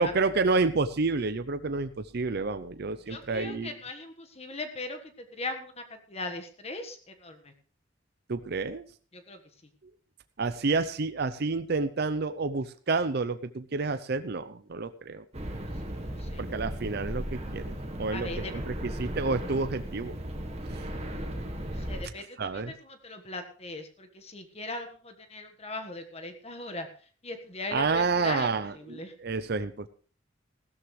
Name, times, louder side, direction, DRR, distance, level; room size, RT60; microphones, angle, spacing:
voice 1, 0.0-3.8 8.3-8.8 10.4-15.2 16.4-20.2 20.7-20.8 22.2-22.7 27.7-29.9, right 4 dB, 55° right, 11 dB, 0.6 m, -29 dB
voice 2, 3.1-5.0 5.4-5.7 6.1-7.0 7.2-7.4 9.3-9.4 16.3-16.4 18.1-18.5 21.9-22.2 22.9-26.9 27.2-28.5 28.9-29.1, left 2 dB, 35° left, 6 dB, 1.5 m, -38 dB
sound 1, 15.3-22.0, equal, 35° right, 1.9 m, -36 dB
16.0 x 13.0 x 3.2 m, 0.41 s
head